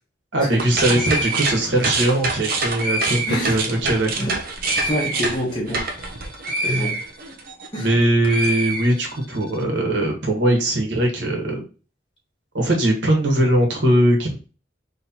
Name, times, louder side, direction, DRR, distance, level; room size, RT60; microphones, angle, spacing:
voice 1, 0.3-4.3 6.6-6.9 7.8-11.6 12.5-14.3, right 1 dB, 80° right, 1 dB, 1.4 m, -20 dB
sound 1, 0.6-7.9 8.2-9.4, right 2 dB, 55° right, 0.7 m, -26 dB
voice 2, 4.7-5.8 6.6-7.0 7.7-7.9, equal, 25° left, -4 dB, 1.2 m, -27 dB
4.1 x 3.2 x 2.8 m, 0.35 s
head